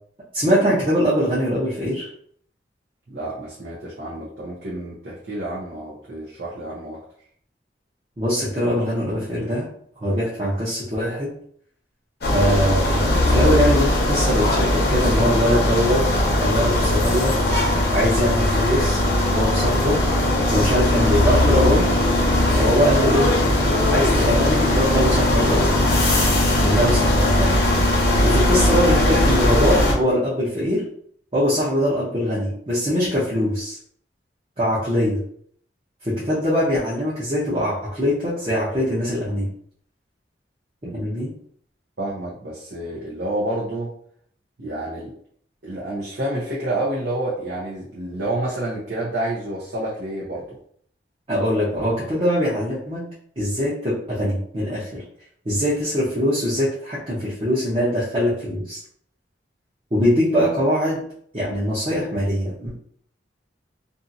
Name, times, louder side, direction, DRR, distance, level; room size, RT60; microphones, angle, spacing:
voice 1, 0.3-2.1 8.2-9.7 10.0-11.3 12.3-16.0 16.4-17.4 17.9-19.0 19.3-20.0 20.5-21.9 22.6-23.3 23.9-25.7 26.6-27.6 28.2-30.8 31.3-33.8 34.6-35.2 36.0-39.5 40.8-41.3 51.3-53.0 53.4-55.0 55.4-58.8 59.9-61.0 61.3-62.7, equal, 30° right, -8 dB, 0.7 m, -22 dB
voice 2, 3.1-7.0 40.8-40.9 42.0-43.9 44.6-45.1 45.6-50.6, right 1 dB, 75° right, -7 dB, 0.8 m, -29 dB
sound 1, 12.2-29.9, left 1 dB, 55° left, 0.7 m, -19 dB
2.6 x 2.5 x 2.6 m, 0.62 s
head